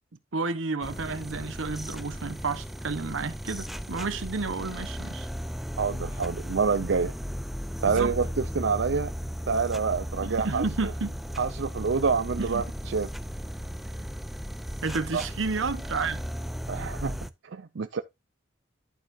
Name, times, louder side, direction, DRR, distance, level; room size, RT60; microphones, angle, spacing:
voice 1, 0.3-5.3 7.8-8.1 10.2-11.2 12.4-12.6 14.8-16.2, right 4 dB, 85° right, 1.1 m, -31 dB
sound 1, 0.8-17.3, equal, ahead, 0.5 m, -36 dB
voice 2, 5.8-7.1 7.8-9.1 9.5-10.6 11.4-13.1 15.1-15.2 16.7-17.2 17.4-18.0, right 5 dB, 65° right, 0.5 m, -27 dB
11.0 x 6.7 x 2.6 m
head